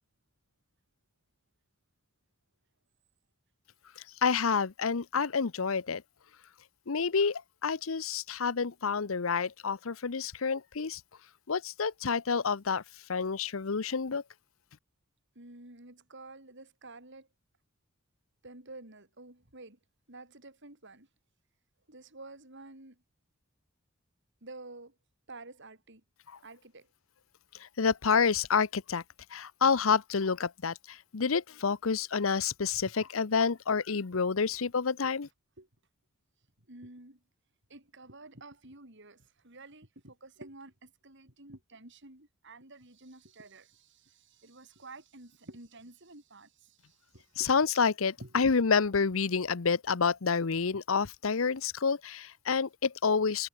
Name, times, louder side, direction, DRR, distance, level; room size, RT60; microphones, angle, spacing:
voice 1, 4.2-6.0 6.9-11.0 11.5-12.8 13.1-14.2 27.6-29.0 29.3-35.3 47.4-53.5, left 5 dB, 80° left, 0.8 m, -28 dB
voice 2, 15.3-17.3 18.4-19.8 20.1-21.1 21.9-23.0 24.4-24.9 25.3-26.0 26.4-26.9 33.0-33.1 35.6-35.7 36.7-37.2 37.7-47.5 48.2-48.5, right 2 dB, 60° right, 6.3 m, -50 dB
head